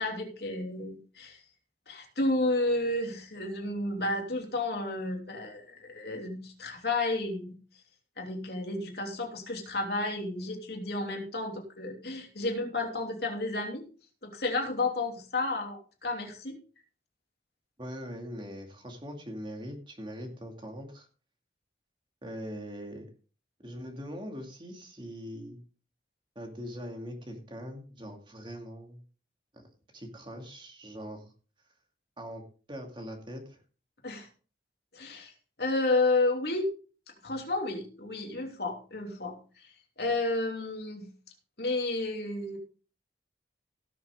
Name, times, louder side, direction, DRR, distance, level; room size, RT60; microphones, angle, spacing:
voice 1, 0.0-1.4 1.9-7.5 8.2-13.9 14.2-16.6 34.0-34.3 34.9-35.3 35.6-36.7 37.2-41.1 41.6-42.6, left 2 dB, 60° left, 2 dB, 3.0 m, -31 dB
voice 2, 17.8-21.1 22.2-23.0 23.6-25.6 26.4-29.0 29.9-31.3 32.2-32.4 32.7-33.6, equal, 25° right, 2 dB, 2.4 m, -41 dB
17.5 x 7.1 x 3.7 m, 0.38 s
head